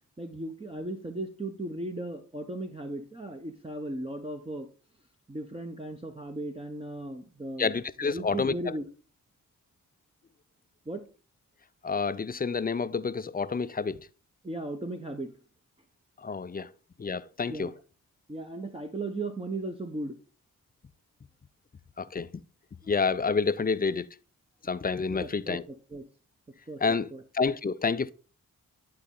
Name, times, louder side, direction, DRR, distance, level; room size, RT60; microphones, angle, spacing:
voice 1, 0.2-4.7 5.3-7.7 8.0-8.8 10.9-11.0 14.4-15.3 16.6-16.7 17.5-17.7 18.3-20.2 22.8-22.9 25.1-26.0 26.7-26.8 27.1-27.2, right 2 dB, 15° right, 0.9 m, -36 dB
voice 2, 7.6-8.5 11.8-14.0 16.2-16.7 17.0-17.7 22.0-22.3 22.9-24.1 24.6-25.6 26.8-28.1, left 5 dB, 25° left, 0.4 m, -29 dB
10.5 x 4.1 x 3.8 m
cardioid pair, 50°, 35 cm